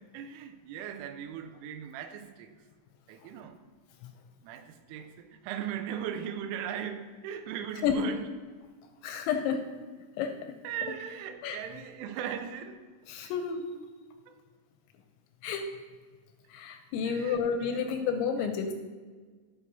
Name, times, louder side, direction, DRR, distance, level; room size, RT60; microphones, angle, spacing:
voice 1, 0.1-2.5 3.1-3.6 4.4-8.3 9.2-9.3 10.6-12.9 13.2-13.3 14.3-14.4 17.0-17.8 18.4-18.5, right 9 dB, 85° right, 9 dB, 3.1 m, -38 dB
voice 2, 9.0-9.7 10.2-10.6 11.4-11.6 13.1-13.7 15.4-15.7 16.5-18.7, left 6 dB, 80° left, 6 dB, 2.7 m, -30 dB
15.5 x 6.2 x 2.7 m, 1.5 s
omnidirectional pair, 5.6 m